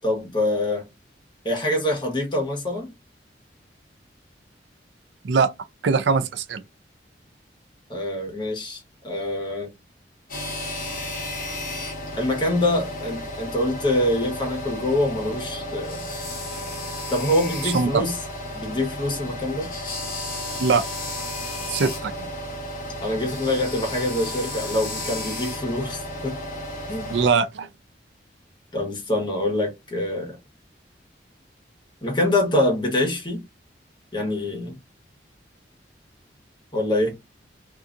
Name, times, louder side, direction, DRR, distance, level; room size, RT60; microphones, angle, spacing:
voice 1, 0.0-0.9 1.4-2.9 7.9-9.7 12.2-16.0 17.1-18.2 18.5-19.7 23.0-26.4 26.9-27.2 28.7-30.4 32.0-33.4 34.1-34.8 36.7-37.2, left 1 dB, 25° left, 1.1 m, -25 dB
voice 2, 5.8-6.6 17.7-18.0 20.6-20.8 21.7-22.3 27.1-27.7, right 5 dB, 85° right, 0.4 m, -21 dB
sound 1, 10.3-27.3, left 1 dB, 50° left, 1.0 m, -33 dB
2.6 x 2.4 x 2.5 m
head